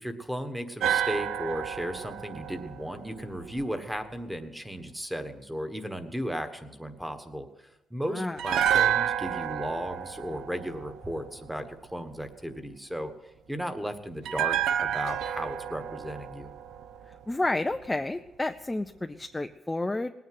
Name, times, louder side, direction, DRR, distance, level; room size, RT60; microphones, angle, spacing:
voice 1, 0.0-13.1 13.5-16.5, equal, 5° right, 8 dB, 1.4 m, -35 dB
sound 1, 0.8-4.0 8.4-11.6 14.2-17.5 17.7-17.9, right 10 dB, 85° right, 0.5 m, -30 dB
voice 2, 17.3-20.1, left 2 dB, 10° left, 7 dB, 0.5 m, -30 dB
19.0 x 9.4 x 7.7 m, 0.99 s
cardioid pair, 130°, 0 cm